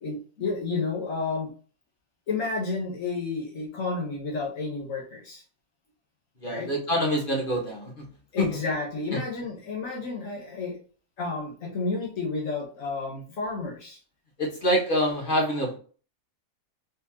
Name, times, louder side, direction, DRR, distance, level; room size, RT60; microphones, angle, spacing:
voice 1, 0.0-1.5 2.3-5.4 6.4-6.7 8.3-10.8 11.2-14.0, left 3 dB, 70° left, -1 dB, 1.6 m, -31 dB
voice 2, 6.4-8.0 8.4-8.5 14.4-15.8, equal, 40° left, -1 dB, 1.5 m, -26 dB
4.1 x 3.6 x 2.8 m, 0.39 s
omnidirectional pair, 1.4 m